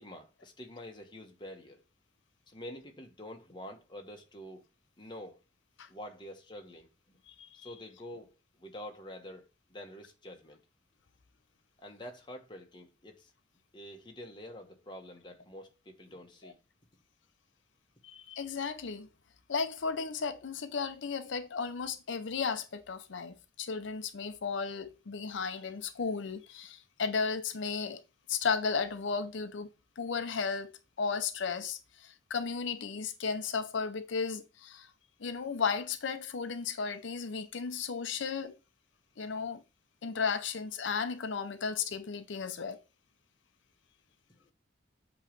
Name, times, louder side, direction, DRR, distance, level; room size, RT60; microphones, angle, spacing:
voice 1, 0.0-1.8 2.5-4.6 5.0-5.4 5.9-6.9 7.5-8.3 8.6-9.4 9.7-10.6 11.8-13.3 13.7-16.6 44.4-44.5, left 1 dB, 25° left, 1.2 m, -47 dB
voice 2, 7.3-7.7 16.4-16.5 18.0-19.1 19.5-28.0 28.3-29.7 30.0-30.7 31.0-34.9 35.2-38.6 39.2-39.6 40.0-42.8, left 5 dB, 80° left, 0.6 m, -34 dB
8.3 x 3.1 x 5.2 m
head